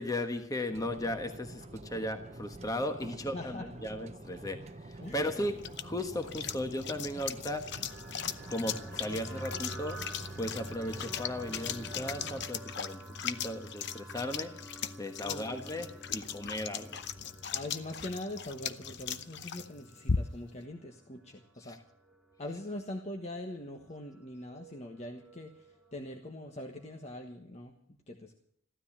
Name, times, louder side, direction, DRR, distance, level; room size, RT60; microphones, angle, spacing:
voice 1, 0.0-7.7 8.5-10.0 10.3-17.0 21.6-21.8, left 1 dB, 20° left, 6 dB, 1.3 m, -36 dB
sound 1, 0.7-12.5, right 2 dB, 35° right, 0.7 m, -48 dB
voice 2, 3.3-3.7 5.0-5.3 15.2-15.7 17.5-21.8 22.4-27.8 28.1-28.4, left 1 dB, 35° left, 3 dB, 1.3 m, -42 dB
sound 2, 5.0-20.6, left 7 dB, 55° left, 0.7 m, -39 dB
sound 3, 7.7-27.4, right 1 dB, 5° right, 1.9 m, -50 dB
15.0 x 13.0 x 7.3 m, 0.66 s
head